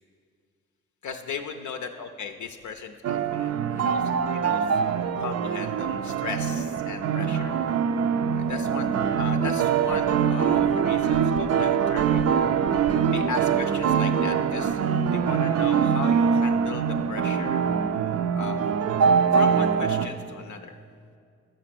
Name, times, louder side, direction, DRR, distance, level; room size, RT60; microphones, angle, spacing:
voice 1, 1.0-4.7 5.2-7.5 8.3-8.9 9.2-12.5 13.1-14.8 15.1-17.6 18.3-18.6 19.3-20.7, left 5 dB, 65° left, 6 dB, 0.5 m, -37 dB
sound 1, 3.0-20.1, right 7 dB, 55° right, 0.4 m, -23 dB
6.5 x 5.1 x 5.9 m, 2.2 s
supercardioid pair, 45°, 31 cm